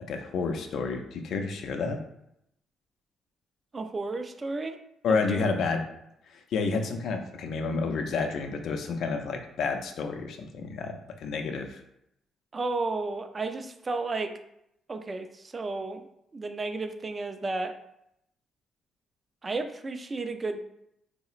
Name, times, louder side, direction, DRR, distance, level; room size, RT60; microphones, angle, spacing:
voice 1, 0.1-2.0 5.0-5.8 6.3-11.8, left 4 dB, 70° left, 5 dB, 0.4 m, -30 dB
voice 2, 3.7-4.8 5.1-5.5 12.5-14.3 14.9-16.1 16.3-17.8 19.4-20.6, right 3 dB, 30° right, 8 dB, 0.3 m, -33 dB
3.7 x 2.0 x 2.4 m, 0.79 s
cardioid pair, 90°, 0 cm